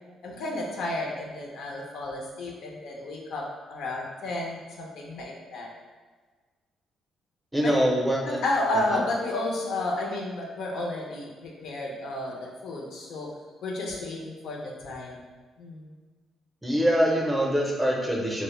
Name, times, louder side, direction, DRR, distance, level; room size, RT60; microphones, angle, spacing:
voice 1, 0.2-5.7 7.6-7.7 8.2-13.3 13.6-15.2 15.6-15.9, left 2 dB, 75° left, -1 dB, 0.5 m, -32 dB
voice 2, 7.5-8.4 8.9-9.0 16.6-18.4, equal, 5° right, -2 dB, 0.5 m, -24 dB
2.1 x 2.0 x 3.1 m, 1.4 s
cardioid pair, 90°, 0 cm